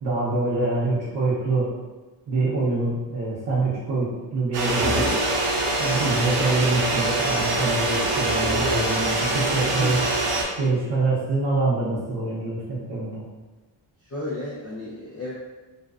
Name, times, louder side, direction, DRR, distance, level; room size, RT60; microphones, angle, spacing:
voice 1, 0.0-1.7 2.3-5.1 5.8-10.0 10.6-13.2, right 2 dB, 50° right, -9 dB, 0.8 m, -25 dB
sound 1, 4.5-10.4, right 2 dB, 85° right, 0.6 m, -24 dB
voice 2, 14.0-15.3, left 1 dB, 35° left, -7 dB, 0.5 m, -33 dB
2.5 x 2.2 x 2.4 m, 1.2 s
cardioid pair, 105°, 47 cm